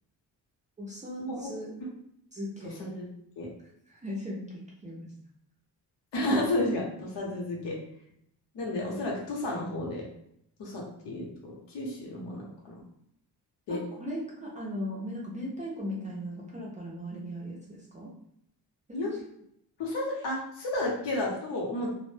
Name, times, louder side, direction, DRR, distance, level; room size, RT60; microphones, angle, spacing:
voice 1, 0.8-1.9 2.3-2.8 3.9-5.1 13.7-18.1 18.9-19.2, equal, 20° right, -5 dB, 0.4 m, -38 dB
voice 2, 6.1-7.7 8.5-10.0 10.6-12.7 13.7-13.8 18.9-19.1 19.8-21.9, left 1 dB, 80° left, -3 dB, 0.8 m, -32 dB
2.0 x 2.0 x 3.1 m, 0.73 s
cardioid pair, 130°, 42 cm